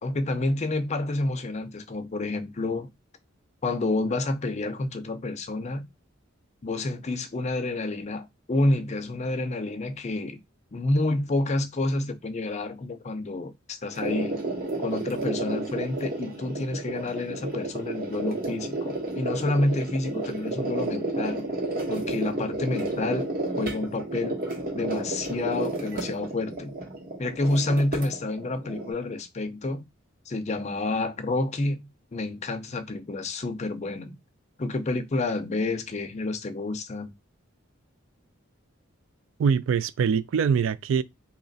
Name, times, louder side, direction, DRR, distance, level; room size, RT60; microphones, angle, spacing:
voice 1, 0.0-2.9 3.6-5.9 6.6-10.4 10.7-14.4 14.8-21.5 21.9-23.3 23.6-24.4 24.7-26.7 27.2-29.9 30.3-34.2 34.6-37.1, left 2 dB, 35° left, 0.5 m, -29 dB
sound 1, 13.9-28.9, right 2 dB, 45° right, 1.1 m, -32 dB
voice 2, 39.4-41.0, right 6 dB, 70° right, 0.3 m, -23 dB
2.9 x 2.4 x 3.9 m
head